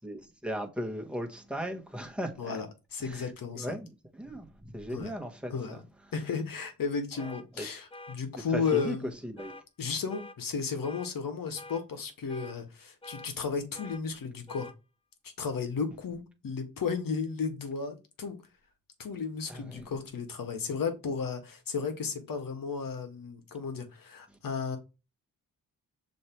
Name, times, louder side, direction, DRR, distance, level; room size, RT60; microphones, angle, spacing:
voice 1, 0.0-2.6 3.0-3.3 3.6-3.9 4.1-5.5 7.6-7.7 8.5-9.0 9.2-9.6 19.5-19.8, equal, 5° right, 1.4 m, -37 dB
voice 2, 2.4-3.8 4.9-5.1 5.5-5.8 6.1-9.1 9.8-14.7 15.4-18.4 19.0-24.8, left 5 dB, 70° left, 1.5 m, -34 dB
sound 1, 7.2-7.4 7.9-8.2 8.6-8.9 9.4-9.6 10.1-10.4 10.8-11.1 11.6-11.8 12.3-12.6 13.0-13.3 13.7-14.0 14.5-14.7, left 2 dB, 15° left, 0.8 m, -46 dB
6.5 x 3.3 x 4.5 m
cardioid pair, 75°, 35 cm